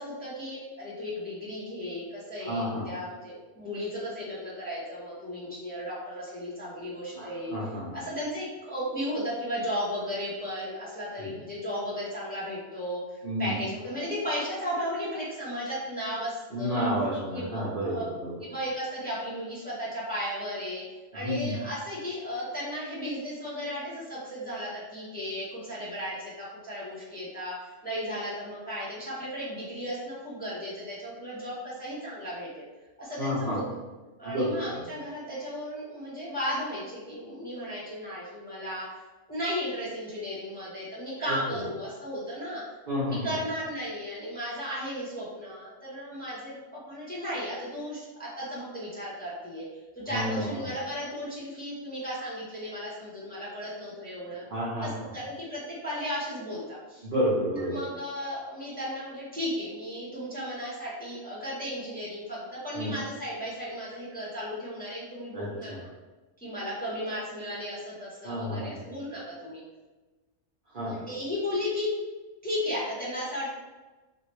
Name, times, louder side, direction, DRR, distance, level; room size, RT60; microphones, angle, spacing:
voice 1, 0.0-7.5 7.9-16.9 17.3-18.0 18.5-20.8 21.1-27.5 27.8-32.6 33.0-33.6 34.2-38.9 39.3-42.6 43.1-49.6 49.9-54.4 54.8-57.1 57.7-65.9 66.4-69.6 70.8-71.9 72.4-73.5, equal, 10° left, -9 dB, 0.9 m, -35 dB
voice 2, 2.5-2.9 7.1-7.9 11.2-11.3 13.2-13.5 16.5-18.3 21.2-21.5 33.2-33.6 34.2-34.5 42.9-43.2 50.1-50.6 54.5-54.9 57.0-57.8 62.7-62.9 65.3-65.8 68.2-68.7 70.7-71.0, equal, 45° right, -7 dB, 0.9 m, -30 dB
2.9 x 2.9 x 3.1 m, 1.2 s
omnidirectional pair, 1.3 m